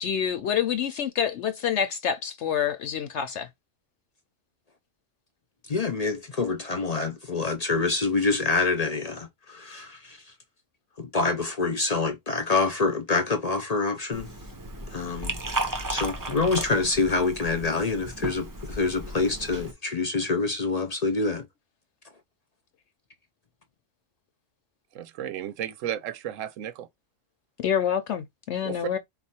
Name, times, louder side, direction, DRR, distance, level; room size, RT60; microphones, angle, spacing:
voice 1, 0.0-3.5 27.6-29.0, left 8 dB, 70° left, 0.9 m, -27 dB
voice 2, 5.7-10.2 11.0-14.3 14.9-15.4 15.9-21.5, left 3 dB, 45° left, 0.5 m, -26 dB
Liquid, 14.1-19.7, right 2 dB, 25° right, 0.5 m, -34 dB
voice 3, 24.9-26.9 28.6-28.9, right 10 dB, 85° right, 1.0 m, -33 dB
4.1 x 2.4 x 4.1 m
omnidirectional pair, 1.3 m